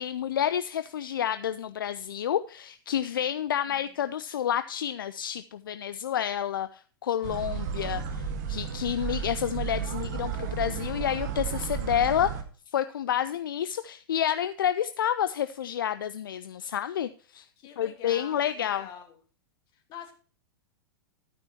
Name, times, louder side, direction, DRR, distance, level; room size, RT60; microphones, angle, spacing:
voice 1, 0.0-12.3 12.7-17.4 17.8-18.8, left 10 dB, 65° left, 12 dB, 0.5 m, -29 dB
sound 1, 7.2-12.4, right 7 dB, 50° right, 1.5 m, -33 dB
voice 2, 17.6-19.2 19.7-20.1, left 8 dB, 35° left, 3 dB, 2.4 m, -46 dB
11.5 x 9.6 x 3.0 m, 0.40 s
figure-of-eight pair, 100°, 12 cm